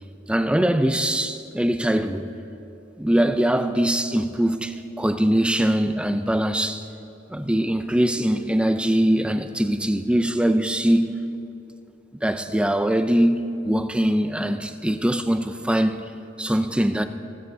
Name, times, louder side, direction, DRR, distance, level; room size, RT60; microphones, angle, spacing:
voice 1, 0.3-2.3 3.0-6.8 7.3-11.2 12.2-16.1 16.4-17.0, right 1 dB, 5° right, 0.5 m, -22 dB
27.5 x 14.0 x 2.8 m
head